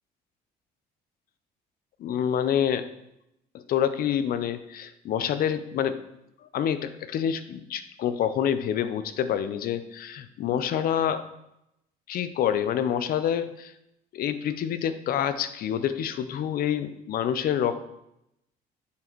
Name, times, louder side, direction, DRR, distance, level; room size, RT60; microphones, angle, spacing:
voice 1, 2.0-2.9 3.5-6.0 6.4-11.3 12.1-13.7 14.1-17.8, left 9 dB, 60° left, 12 dB, 0.6 m, -27 dB
8.5 x 4.1 x 4.5 m, 0.84 s
cardioid pair, 110°, 17 cm